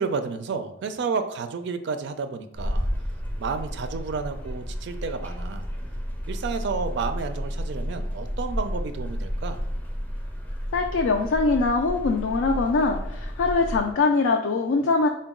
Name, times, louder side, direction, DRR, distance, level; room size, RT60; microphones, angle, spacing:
voice 1, 0.0-2.9 3.4-5.6 6.3-9.6, right 5 dB, 65° right, 9 dB, 0.4 m, -31 dB
sound 1, 2.5-13.9, equal, 10° left, 0.5 m, -32 dB
voice 2, 10.7-15.1, left 3 dB, 85° left, 3 dB, 0.4 m, -22 dB
3.8 x 2.2 x 3.5 m, 0.92 s
head